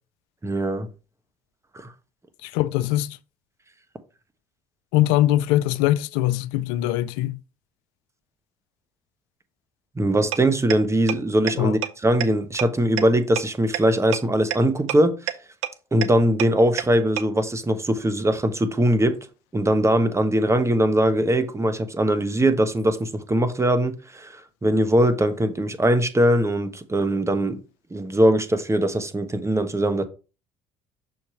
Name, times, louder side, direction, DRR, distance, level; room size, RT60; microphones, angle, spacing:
voice 1, 0.4-0.9 1.7-1.9 10.0-15.1 15.9-19.2 19.5-27.6 27.9-30.0, right 1 dB, 20° right, 1.2 m, -21 dB
voice 2, 2.4-3.2 4.9-7.4 11.6-11.8, left 14 dB, 85° left, 0.4 m, -22 dB
sound 1, 10.3-10.4 10.7-10.8 11.1-11.2 11.5-11.6 11.8-11.9 12.2-12.3 12.6-12.7 13.0-13.1 13.4-13.5 13.7-13.8 14.1-14.2 14.5-14.6 14.9-15.0 15.3-15.4 15.6-15.7 16.0-16.1 16.4-16.5 16.8-16.9 17.2-17.3, right 14 dB, 90° right, 0.6 m, -25 dB
6.4 x 3.0 x 5.8 m
hypercardioid pair, 65°, 15 cm